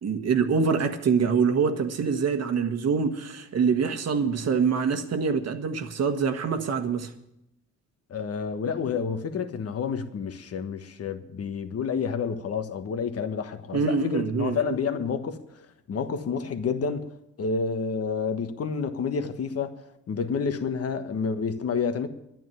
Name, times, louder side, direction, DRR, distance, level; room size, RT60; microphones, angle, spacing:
voice 1, 0.0-7.1 13.7-14.6, right 5 dB, 55° right, 1.5 m, -25 dB
voice 2, 8.1-15.4 15.9-17.1 17.4-19.8 20.1-22.1, left 5 dB, 50° left, 1.4 m, -29 dB
11.5 x 9.2 x 9.2 m
cardioid pair, 90°, 30 cm